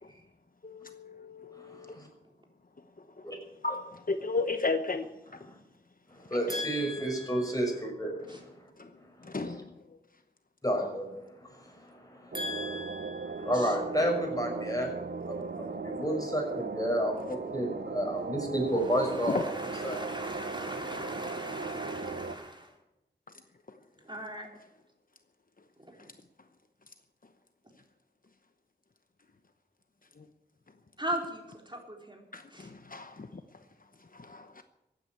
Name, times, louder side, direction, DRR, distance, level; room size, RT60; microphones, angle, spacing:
voice 1, 0.6-2.0 3.2-3.3 3.6-3.8 4.1-5.1 6.5-6.6 8.8-8.9 9.2-9.7 19.3-19.4 30.2-30.3 32.3-33.4 34.1-34.6, left 3 dB, 50° left, 8 dB, 1.0 m, -34 dB
voice 2, 1.5-2.1 3.2-3.4 5.4-5.6 6.1-8.6 9.5-9.6 10.6-11.1 11.4-12.4 13.4-14.9 15.3-19.4 19.8-20.0, equal, 20° left, 1 dB, 5.9 m, -31 dB
voice 3, 6.5-7.6 8.3-8.4 12.3-13.7 19.0-22.7 24.0-24.5 26.0-26.1 31.0-32.2 32.5-32.7, equal, 25° right, 1 dB, 3.9 m, -39 dB
sound 1, 12.3-22.4, right 4 dB, 75° right, 1.0 m, -37 dB
15.0 x 9.6 x 8.7 m, 0.95 s
wide cardioid pair, 50°, 18 cm